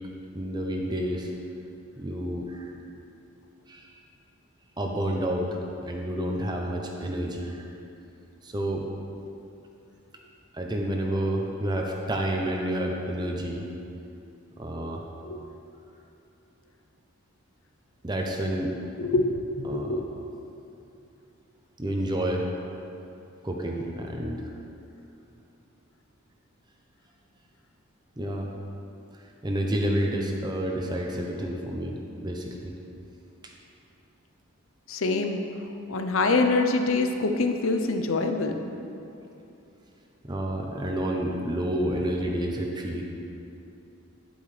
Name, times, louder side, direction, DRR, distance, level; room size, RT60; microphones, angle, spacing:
voice 1, 0.3-1.3 2.0-2.7 3.7-3.9 4.8-7.7 8.4-8.9 10.5-13.7 14.6-15.0 18.0-18.8 19.6-20.0 21.8-22.5 23.4-24.4 28.2-28.5 29.4-32.7 33.4-33.5 40.2-43.0, right 1 dB, 20° right, 0 dB, 0.7 m, -29 dB
voice 2, 19.0-20.1 34.9-35.4 35.9-38.5, left 3 dB, 65° left, 5 dB, 0.6 m, -25 dB
10.0 x 8.8 x 3.3 m, 2.8 s
head